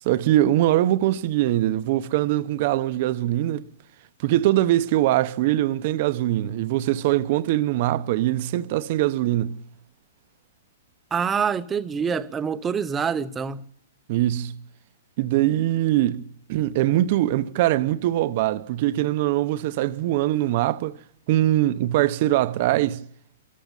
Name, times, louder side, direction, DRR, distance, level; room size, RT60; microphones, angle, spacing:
voice 1, 0.0-3.7 4.2-9.6 14.1-14.6 15.2-21.0 21.3-23.0, right 14 dB, 40° right, 0.8 m, -22 dB
voice 2, 11.1-13.6, right 6 dB, 15° right, 0.8 m, -26 dB
25.5 x 14.0 x 8.9 m
hypercardioid pair, 160°, 0 cm